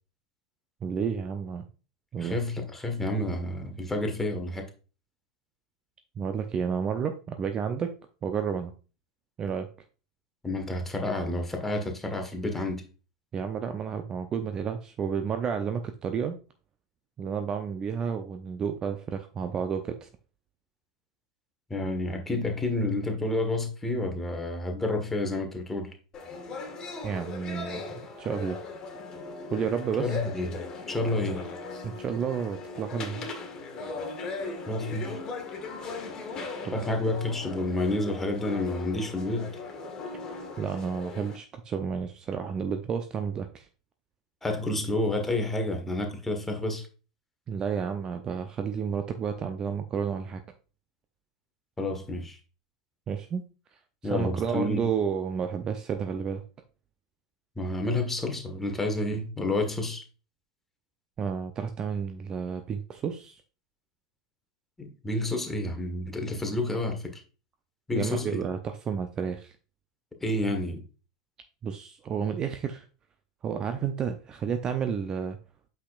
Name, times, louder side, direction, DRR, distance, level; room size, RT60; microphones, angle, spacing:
voice 1, 0.8-1.6 2.1-2.4 6.2-7.9 8.2-8.7 9.4-9.7 13.3-16.4 17.2-20.1 27.0-28.6 29.5-30.2 31.8-33.2 36.7-36.8 40.6-43.7 47.5-50.4 53.1-53.4 54.1-56.4 61.2-63.4 67.9-69.5 71.6-72.8 73.4-75.4, right 7 dB, 25° right, 0.6 m, -31 dB
voice 2, 2.2-4.7 10.4-12.8 21.7-25.9 30.0-30.6 30.9-31.4 34.7-35.2 36.7-39.5 44.4-46.9 51.8-52.4 54.0-54.9 57.6-60.0 64.8-67.2 67.9-68.4 70.2-70.8, left 2 dB, 10° left, 1.6 m, -29 dB
sound 1, 26.1-41.4, left 3 dB, 25° left, 1.6 m, -38 dB
8.4 x 5.8 x 2.5 m
figure-of-eight pair, 85°, 3 cm